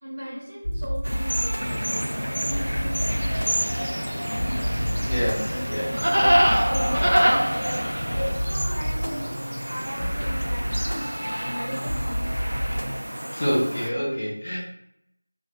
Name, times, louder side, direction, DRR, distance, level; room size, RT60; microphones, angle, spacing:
voice 1, 0.0-4.0 5.2-5.8 6.2-7.9 8.4-12.3 12.7-12.8, equal, 30° right, -7 dB, 1.0 m, -37 dB
sound 1, 0.6-13.0, equal, 90° left, 0.4 m, -30 dB
sound 2, 1.0-13.9, equal, 85° right, 0.4 m, -27 dB
sound 3, 1.6-8.3, equal, 55° left, 1.2 m, -32 dB
voice 2, 5.1-5.9 13.3-14.6, equal, 15° left, -8 dB, 0.4 m, -27 dB
2.7 x 2.2 x 3.0 m, 0.76 s
figure-of-eight pair, 180°, 0 cm